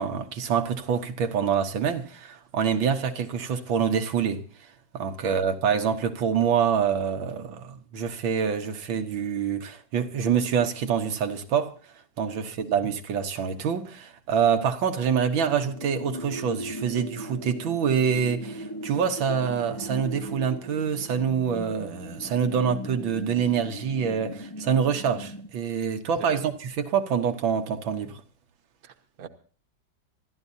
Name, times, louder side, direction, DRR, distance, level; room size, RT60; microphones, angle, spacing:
voice 1, 0.0-4.4 4.9-11.7 12.2-28.2, right 7 dB, 85° right, 1.9 m, -26 dB
sound 1, 15.3-25.5, equal, 25° left, 0.5 m, -39 dB
voice 2, 26.2-26.5 28.8-29.3, right 7 dB, 55° right, 1.5 m, -44 dB
26.5 x 13.5 x 2.7 m
omnidirectional pair, 2.1 m